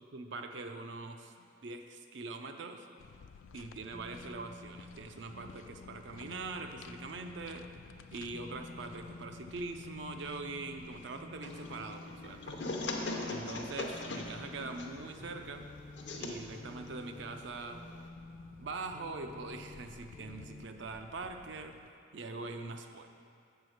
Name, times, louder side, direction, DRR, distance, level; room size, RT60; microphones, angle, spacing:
voice 1, 0.1-1.3 1.6-2.9 3.5-7.7 8.1-12.6 13.3-15.7 16.2-17.8 18.6-21.8 22.1-23.1, right 3 dB, 70° right, 6 dB, 0.5 m, -43 dB
sound 1, 3.0-21.9, left 6 dB, 85° left, 0.3 m, -55 dB
sound 2, 3.9-20.6, left 1 dB, 5° left, 0.5 m, -51 dB
sound 3, 11.4-18.1, left 2 dB, 65° left, 0.7 m, -41 dB
7.7 x 4.6 x 6.4 m, 2.4 s
head